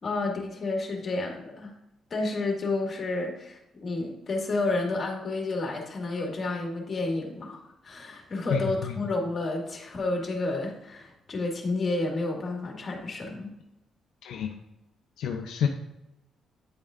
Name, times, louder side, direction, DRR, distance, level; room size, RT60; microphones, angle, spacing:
voice 1, 0.0-1.7 2.1-13.5, left 2 dB, 40° left, 0 dB, 1.8 m, -30 dB
voice 2, 8.5-9.0 14.2-14.5 15.2-15.7, left 7 dB, 85° left, 3 dB, 0.5 m, -29 dB
8.9 x 5.2 x 2.5 m, 0.91 s
cardioid pair, 90°, 0 cm